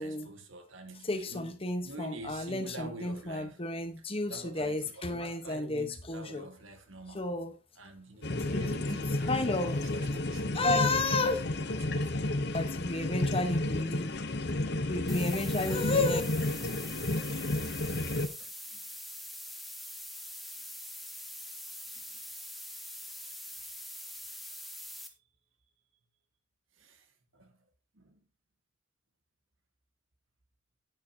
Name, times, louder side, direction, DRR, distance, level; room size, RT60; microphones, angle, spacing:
voice 1, 0.0-1.6 1.8-3.7 4.3-7.3 7.8-10.8 11.1-12.2 15.9-16.0 18.4-18.8 21.9-22.0 26.8-27.6 27.9-28.2, right 2 dB, 70° right, 1.8 m, -47 dB
voice 2, 1.0-6.5 7.1-7.5 8.5-9.0 9.3-9.8 10.5-11.4 12.5-14.1 14.9-16.2, left 2 dB, 25° left, 1.2 m, -32 dB
sound 1, 8.2-18.3, left 2 dB, 50° left, 0.9 m, -32 dB
sound 2, 15.1-25.1, left 1 dB, ahead, 1.1 m, -44 dB
11.0 x 9.6 x 2.9 m
head